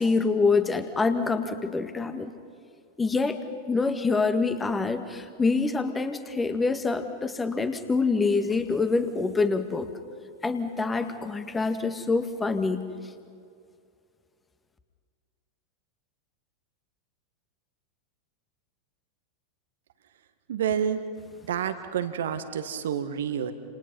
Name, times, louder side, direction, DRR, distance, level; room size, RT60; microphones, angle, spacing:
voice 1, 0.0-2.3 3.0-9.9 10.4-12.8, left 4 dB, 15° left, 8 dB, 1.9 m, -26 dB
voice 2, 20.5-21.0 21.5-23.5, right 8 dB, 60° right, 10 dB, 1.7 m, -28 dB
30.0 x 27.5 x 5.6 m, 2.3 s
figure-of-eight pair, 90°, 0 cm